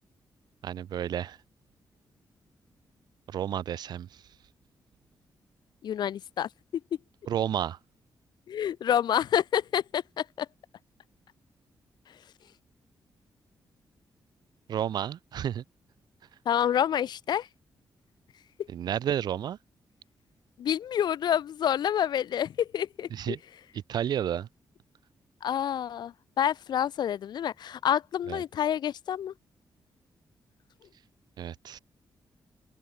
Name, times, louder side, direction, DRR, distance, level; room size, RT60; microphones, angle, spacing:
voice 1, 0.6-1.4 3.3-4.4 7.3-7.8 14.7-15.6 18.7-19.6 23.1-23.4 23.7-24.5 28.3-28.4 31.4-31.8, right 10 dB, 70° right, 0.6 m, -31 dB
voice 2, 5.8-6.8 8.5-10.5 16.4-17.5 18.6-18.7 20.6-23.4 25.4-29.3, left 9 dB, 75° left, 1.3 m, -28 dB
open air
wide cardioid pair, 160°, 8 cm